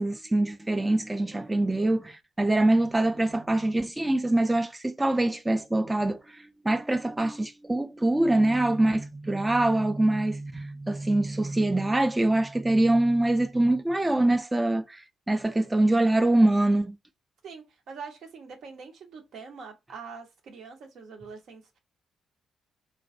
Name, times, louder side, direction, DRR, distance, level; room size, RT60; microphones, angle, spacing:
voice 1, 0.0-17.0, right 1 dB, 15° right, 0.4 m, -24 dB
voice 2, 1.3-1.8 17.4-21.8, right 5 dB, 60° right, 0.7 m, -44 dB
2.2 x 2.1 x 2.6 m
figure-of-eight pair, 40°, 0 cm